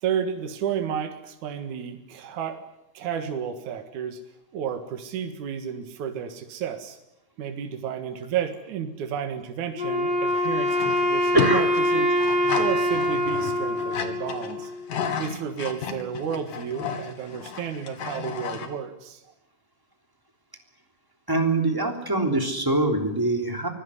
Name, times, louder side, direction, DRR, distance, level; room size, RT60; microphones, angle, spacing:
voice 1, 0.0-2.6 2.9-4.2 4.5-7.0 7.4-11.7 11.9-12.1 12.6-14.7 15.2-19.2, right 8 dB, 70° right, 6 dB, 3.1 m, -32 dB
Wind instrument woodwind instrument, 9.8-14.9, left 1 dB, 30° left, 5.6 m, -24 dB
sound 1, 10.3-18.7, left 7 dB, 85° left, 3.6 m, -33 dB
voice 2, 11.3-11.7 21.3-23.7, right 2 dB, 5° right, 4 dB, 3.0 m, -23 dB
24.5 x 17.0 x 10.0 m, 0.88 s
omnidirectional pair, 3.6 m